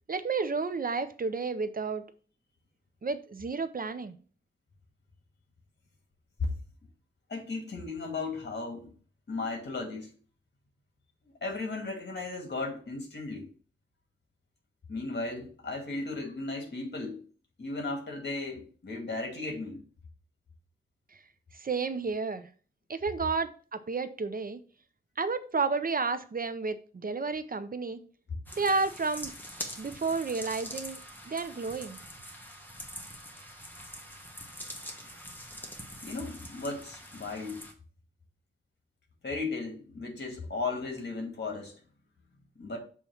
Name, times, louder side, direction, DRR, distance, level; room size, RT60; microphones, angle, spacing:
voice 1, 0.1-2.0 3.0-4.1 21.1-21.2 21.5-22.5 22.9-24.6 25.2-28.0 28.5-29.3 29.8-31.0 31.3-32.0, right 4 dB, 45° right, 0.6 m, -31 dB
voice 2, 7.3-8.9 9.3-10.1 11.4-13.5 14.9-17.2 17.6-19.8 36.0-37.7 39.2-41.7 42.6-42.8, left 3 dB, 55° left, 1.9 m, -35 dB
sound 1, 28.5-37.7, equal, 10° left, 1.4 m, -44 dB
6.9 x 3.1 x 5.6 m
wide cardioid pair, 85°, 20 cm